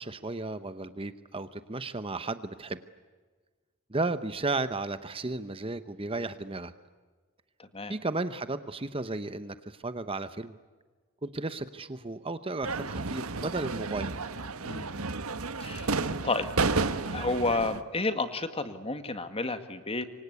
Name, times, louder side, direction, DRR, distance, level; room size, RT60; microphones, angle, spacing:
voice 1, 0.0-2.8 3.9-6.7 7.9-10.5 11.2-14.1, right 2 dB, 25° right, 12 dB, 0.8 m, -34 dB
sound 1, 12.6-17.8, right 3 dB, 70° right, 1.4 m, -31 dB
voice 2, 14.6-15.0 15.6-15.9 16.2-16.5 17.1-20.0, left 3 dB, 25° left, 9 dB, 1.9 m, -31 dB
27.5 x 25.0 x 8.3 m, 1.4 s
head